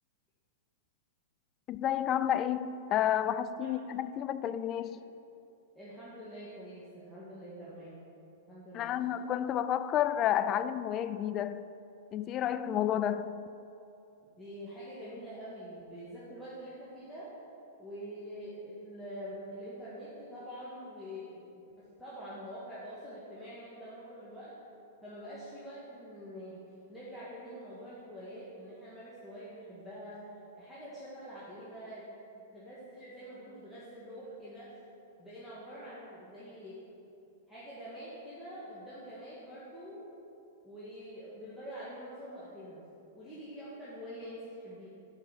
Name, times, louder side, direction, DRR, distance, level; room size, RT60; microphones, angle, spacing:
voice 1, 1.7-5.0 8.7-11.6 12.1-13.4, left 10 dB, 30° left, 13 dB, 0.3 m, -30 dB
voice 2, 5.7-8.0 8.5-8.9 14.4-17.3 17.8-24.5 25.0-26.6 26.9-30.2 30.5-32.0 32.3-34.7 35.2-36.8 37.5-40.0 40.6-42.8 43.1-44.9, equal, ahead, -11 dB, 1.8 m, -45 dB
6.9 x 5.5 x 7.2 m, 2.8 s
hypercardioid pair, 125°, 0 cm